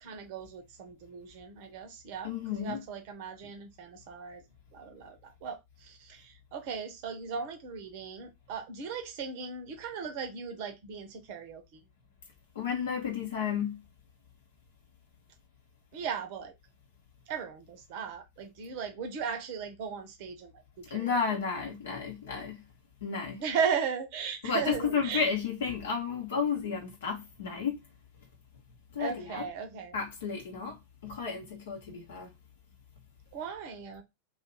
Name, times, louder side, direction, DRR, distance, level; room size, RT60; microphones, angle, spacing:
voice 1, 0.0-4.4 4.7-11.6 15.9-16.5 17.3-20.5 20.8-21.2 23.4-25.3 29.0-30.0 33.3-34.0, right 6 dB, 45° right, 0.7 m, -37 dB
voice 2, 2.2-2.8 12.5-13.8 20.9-22.6 23.0-23.4 24.4-27.8 28.9-29.5 29.9-30.8 31.0-32.3, left 6 dB, 60° left, 0.8 m, -32 dB
2.8 x 2.4 x 2.9 m
figure-of-eight pair, 90°, 0 cm